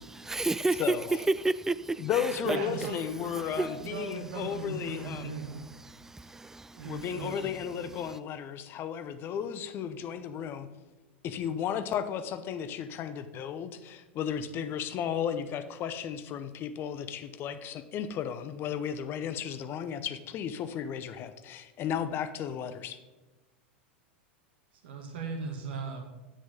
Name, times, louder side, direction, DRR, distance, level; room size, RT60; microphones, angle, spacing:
voice 1, 0.0-1.0 1.3-2.1 2.5-2.6 3.6-3.7 5.8-7.0, right 2 dB, 5° right, 0.3 m, -30 dB
voice 2, 0.8-1.2 2.0-5.3 6.8-10.7 11.2-23.0, left 8 dB, 35° left, 0.8 m, -34 dB
voice 3, 2.5-5.6 6.7-7.5 24.8-26.0, right 4 dB, 60° right, 2.1 m, -38 dB
10.0 x 7.9 x 3.8 m
figure-of-eight pair, 90°, 6 cm